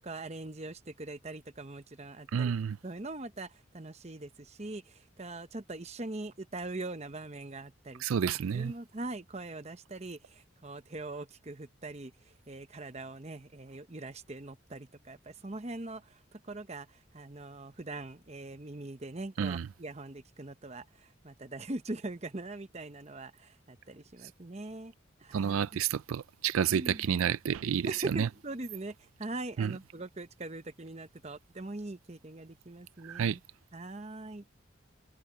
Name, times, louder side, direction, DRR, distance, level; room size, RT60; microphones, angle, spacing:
voice 1, 0.0-2.5 2.8-8.0 8.5-12.1 12.5-16.9 17.1-24.9 25.2-25.6 26.7-27.0 27.8-33.4 33.7-34.4, right 2 dB, 30° right, 0.9 m, -42 dB
voice 2, 2.3-2.8 8.0-8.7 19.4-19.7 25.3-28.3 29.6-29.8 33.0-33.4, right 7 dB, 85° right, 0.4 m, -30 dB
head